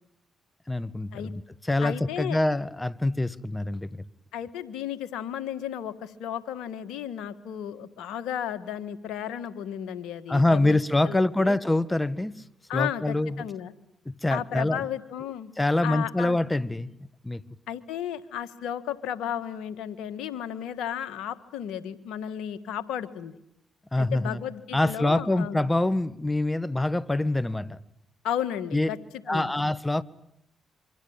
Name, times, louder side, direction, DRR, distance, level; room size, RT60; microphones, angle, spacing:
voice 1, 0.7-1.4 1.7-3.9 10.3-12.4 12.7-13.4 14.1-14.9 15.6-16.9 17.2-17.4 23.9-24.4 24.7-27.8 28.7-28.9 29.3-30.0, left 2 dB, 15° left, 1.5 m, -25 dB
voice 2, 1.8-2.4 4.3-11.6 12.7-13.7 14.3-15.5 15.8-16.4 17.7-23.4 24.0-25.6 28.2-29.0 29.3-29.5, left 10 dB, 80° left, 1.6 m, -34 dB
26.0 x 24.5 x 8.8 m
hypercardioid pair, 50°, 0 cm